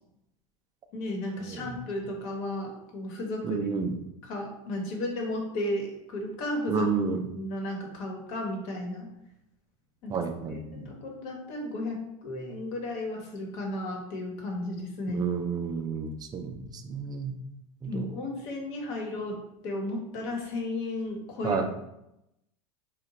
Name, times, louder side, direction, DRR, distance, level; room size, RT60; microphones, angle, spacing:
voice 1, 0.9-3.6 4.2-6.8 7.3-9.1 10.0-10.1 10.5-15.2 17.9-19.4 19.6-21.6, left 1 dB, 60° left, 1 dB, 1.0 m, -34 dB
voice 2, 3.4-4.0 6.7-7.2 10.1-10.9 15.1-17.4 17.8-18.1 21.4-21.7, right 5 dB, 20° right, 6 dB, 0.4 m, -31 dB
2.7 x 2.1 x 4.0 m, 0.86 s
hypercardioid pair, 105°, 18 cm